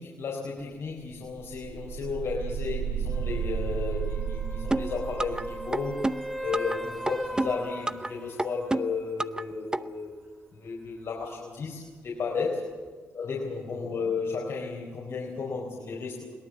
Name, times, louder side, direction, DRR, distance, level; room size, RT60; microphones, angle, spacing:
voice 1, 0.0-6.1 6.4-10.1 10.5-12.6 13.1-16.2, left 4 dB, 65° left, -2 dB, 4.2 m, -33 dB
sound 1, 0.6-0.7 1.0-7.8, right 7 dB, 55° right, 5.7 m, -35 dB
sound 2, 3.1-8.8 12.9-13.0, equal, ahead, 3.1 m, -39 dB
sound 3, 4.7-5.4 5.7-6.8 7.1-8.1 8.4-9.4 9.7-9.8, right 2 dB, 15° right, 0.6 m, -28 dB
22.0 x 18.0 x 7.5 m, 1.5 s
cardioid pair, 75°, 5 cm